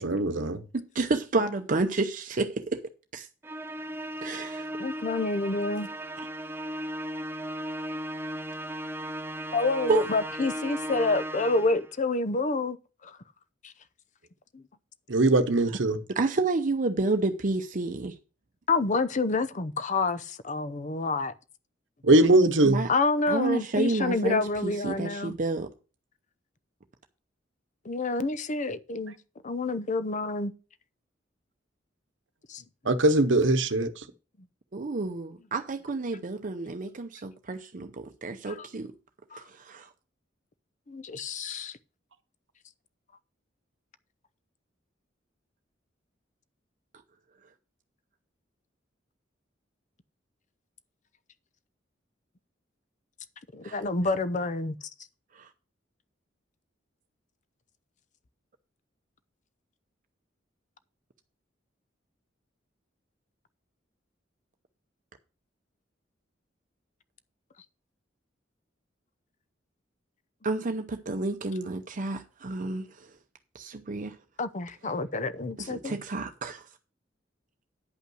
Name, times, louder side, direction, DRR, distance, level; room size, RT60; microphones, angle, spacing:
voice 1, 0.0-0.6 15.1-16.0 22.0-22.8 32.9-33.9, right 2 dB, 80° right, 0.9 m, -21 dB
voice 2, 0.7-2.8 3.1-3.3 4.2-4.7 9.9-10.0 16.1-18.1 22.6-22.9 23.3-25.7 34.7-38.9 39.5-39.9 53.6-53.8 55.4-55.5 70.4-72.9 73.5-74.2 75.6-76.6, right 3 dB, 45° right, 0.7 m, -30 dB
Musical instrument, 3.4-11.9, right 1 dB, 15° right, 0.7 m, -36 dB
voice 3, 4.8-5.9 9.5-12.8 13.0-13.2 13.6-13.7 14.5-14.6 18.7-21.3 22.9-25.3 27.8-29.1 29.4-30.5 32.5-32.6 38.5-38.7 39.3-39.4 40.9-41.8 53.5-54.7 74.4-76.0, left 3 dB, 40° left, 0.7 m, -28 dB
10.0 x 5.6 x 6.2 m
head